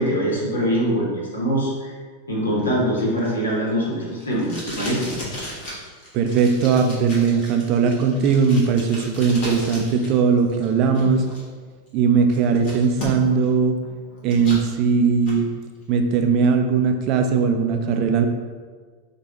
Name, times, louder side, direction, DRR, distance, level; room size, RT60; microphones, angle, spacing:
voice 1, 0.0-1.9 2.3-5.1, equal, 70° left, -3 dB, 0.9 m, -23 dB
Packing tape duct tape, 2.6-10.1 10.4-11.4 11.9-12.0 12.3-13.5 13.8-14.6 15.0-15.4, left 1 dB, 45° left, 1.1 m, -35 dB
voice 2, 6.1-11.2 11.9-13.8 14.2-15.5 15.9-18.3, right 5 dB, 40° right, 5 dB, 0.4 m, -19 dB
4.6 x 2.2 x 2.9 m, 1.5 s
figure-of-eight pair, 90°, 0 cm